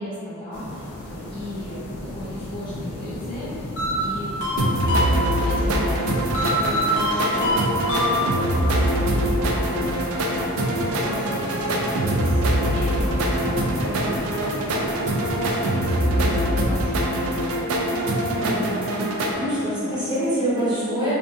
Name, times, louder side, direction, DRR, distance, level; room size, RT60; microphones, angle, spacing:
voice 1, 0.0-3.7 4.0-4.4 5.0-9.9 10.4-15.2 15.6-17.0, left 1 dB, 25° left, -12 dB, 0.5 m, -36 dB
sound 1, 0.5-15.7, left 1 dB, 90° left, 0.4 m, -35 dB
sound 2, 3.8-5.6 6.3-8.6, equal, 65° left, 0.7 m, -24 dB
sound 3, 4.6-19.3, right 1 dB, 75° right, 0.3 m, -23 dB
voice 2, 18.3-18.9 19.3-21.1, equal, 20° right, -12 dB, 0.8 m, -25 dB
2.6 x 2.4 x 2.3 m, 2.7 s
head